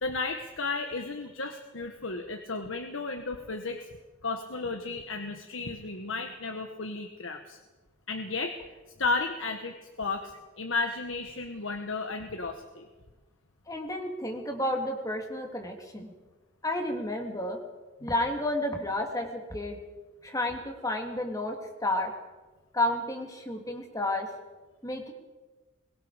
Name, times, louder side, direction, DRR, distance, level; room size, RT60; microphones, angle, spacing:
voice 1, 0.0-3.9 4.2-7.6 8.1-8.6 9.0-12.9, left 3 dB, 85° left, 5 dB, 1.5 m, -33 dB
voice 2, 13.7-16.1 16.6-17.6 18.0-19.8 20.2-22.1 22.7-24.3 24.8-25.1, left 1 dB, 15° left, 2 dB, 2.9 m, -31 dB
23.5 x 22.5 x 5.2 m, 1.3 s
head